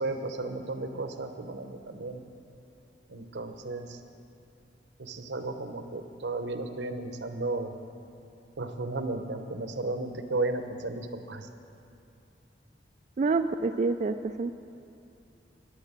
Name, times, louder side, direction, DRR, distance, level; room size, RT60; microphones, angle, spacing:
voice 1, 0.0-2.2 3.1-4.0 5.0-7.8 8.6-11.5, right 2 dB, 85° right, 7 dB, 0.9 m, -34 dB
voice 2, 13.2-14.5, right 4 dB, 40° right, 7 dB, 0.3 m, -27 dB
11.5 x 9.9 x 7.4 m, 2.6 s
head